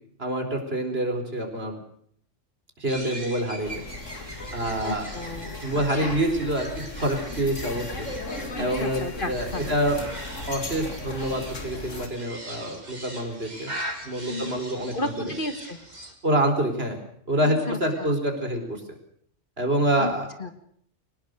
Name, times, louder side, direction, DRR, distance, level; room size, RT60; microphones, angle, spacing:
voice 1, 0.2-1.8 2.8-3.8 4.5-5.1 5.6-8.1 8.6-10.0 10.5-13.7 14.0-15.1 16.2-17.0 17.3-18.8 19.6-20.3, right 1 dB, 55° right, 5 dB, 4.5 m, -26 dB
sound 1, 2.9-16.1, right 1 dB, 35° right, 3.8 m, -41 dB
sound 2, 3.6-12.1, left 2 dB, 85° left, 3.2 m, -37 dB
voice 2, 4.8-5.5 6.0-6.2 8.6-9.8 14.3-14.6 14.9-15.8 17.4-18.1 20.0-20.1 20.4-20.5, left 2 dB, 45° left, 9 dB, 1.8 m, -33 dB
23.0 x 19.5 x 6.6 m, 0.66 s
omnidirectional pair, 1.3 m